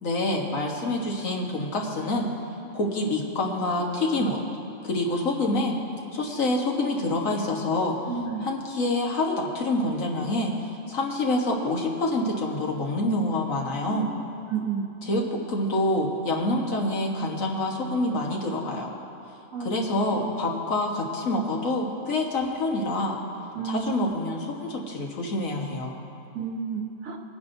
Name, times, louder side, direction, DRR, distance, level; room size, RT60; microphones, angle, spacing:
voice 1, 0.0-2.3 2.7-4.4 4.8-5.8 6.1-8.0 8.4-10.5 10.9-14.1 15.1-18.9 19.6-23.2 23.6-25.9, left 2 dB, 75° left, -1 dB, 1.8 m, -26 dB
voice 2, 8.1-8.5 13.9-14.2 14.5-14.9 19.5-19.7 20.1-20.3 23.5-24.1 26.3-27.2, right 6 dB, 85° right, 1 dB, 1.5 m, -31 dB
22.5 x 10.5 x 2.7 m, 2.8 s
omnidirectional pair, 1.4 m